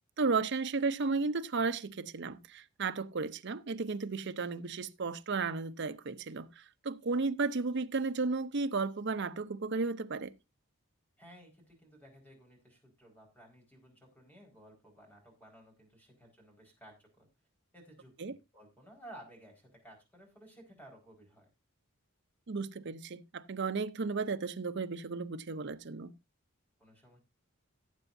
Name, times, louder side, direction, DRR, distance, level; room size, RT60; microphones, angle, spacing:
voice 1, 0.2-10.3 18.2-18.4 22.5-26.1, right 4 dB, 55° right, 0.7 m, -34 dB
voice 2, 11.2-17.3 17.7-21.5 26.8-27.2, right 1 dB, 10° left, 4.6 m, -56 dB
17.5 x 8.0 x 2.6 m
head